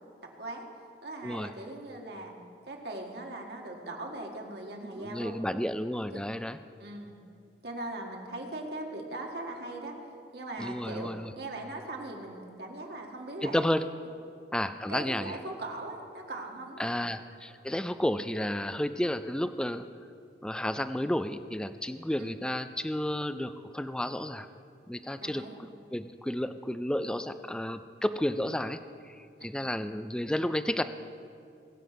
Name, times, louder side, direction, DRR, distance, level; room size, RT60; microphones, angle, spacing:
voice 1, 1.0-2.3 2.7-5.4 6.1-6.2 6.8-7.1 7.6-9.9 10.3-11.1 11.4-13.7 14.9-16.9 22.2-22.3 25.2-25.6 29.4-29.7, right 2 dB, 65° right, 0 dB, 1.8 m, -40 dB
voice 2, 5.0-6.6 10.6-11.3 13.4-13.9 14.5-15.4 16.8-19.8 20.4-24.5 24.9-25.5 25.9-28.8 29.0-30.8, left 1 dB, 5° left, 11 dB, 0.3 m, -32 dB
21.0 x 7.6 x 5.1 m, 2.4 s
head